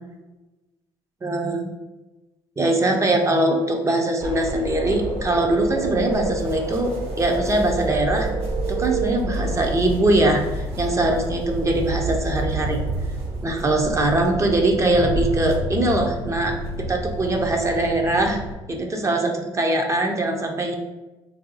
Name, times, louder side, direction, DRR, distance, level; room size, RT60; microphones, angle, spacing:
voice 1, 1.2-1.7 2.6-8.3 8.7-12.8 13.4-16.6 16.9-18.4 18.7-20.7, right 1 dB, 25° right, 2 dB, 0.6 m, -22 dB
sound 1, 4.2-18.5, right 2 dB, 60° right, 1.0 m, -28 dB
2.7 x 2.2 x 3.9 m, 1.1 s
supercardioid pair, 75°, 12 cm